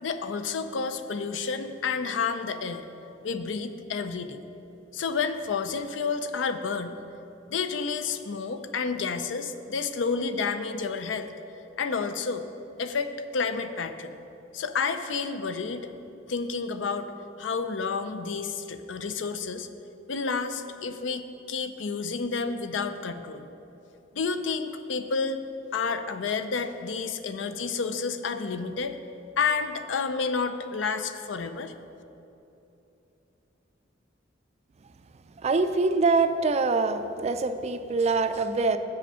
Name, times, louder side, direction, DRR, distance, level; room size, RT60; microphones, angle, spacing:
voice 1, 0.0-2.9 3.2-4.4 4.9-7.0 7.5-11.3 11.8-12.4 12.8-14.2 14.5-15.9 16.3-17.1 17.4-19.7 20.1-23.5 24.1-25.4 25.7-29.0 29.4-31.7, left 5 dB, 70° left, 10 dB, 0.5 m, -30 dB
voice 2, 35.4-38.8, right 3 dB, 35° right, 10 dB, 0.4 m, -24 dB
7.6 x 7.4 x 5.5 m, 2.9 s
head